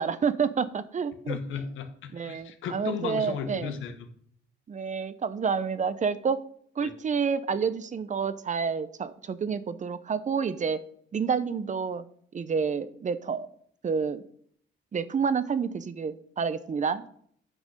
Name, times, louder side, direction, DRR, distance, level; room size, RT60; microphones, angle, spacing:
voice 1, 0.0-1.4 2.1-3.7 4.7-6.4 6.8-10.8 11.1-12.0 12.3-13.5 13.8-14.2 14.9-17.1, right 6 dB, 40° right, 14 dB, 0.8 m, -29 dB
voice 2, 1.3-4.1 6.8-6.9, left 7 dB, 85° left, 7 dB, 1.4 m, -35 dB
9.0 x 6.1 x 6.5 m, 0.62 s
cardioid pair, 90°, 20 cm